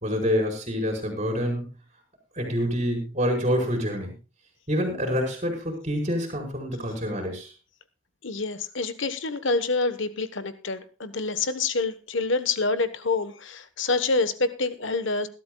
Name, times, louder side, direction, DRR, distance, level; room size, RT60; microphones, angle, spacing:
voice 1, 0.0-1.7 2.3-4.1 4.7-7.5, equal, 35° right, 1 dB, 4.9 m, -27 dB
voice 2, 8.2-15.3, left 3 dB, 65° left, 12 dB, 1.1 m, -27 dB
21.5 x 12.0 x 2.3 m, 0.32 s
head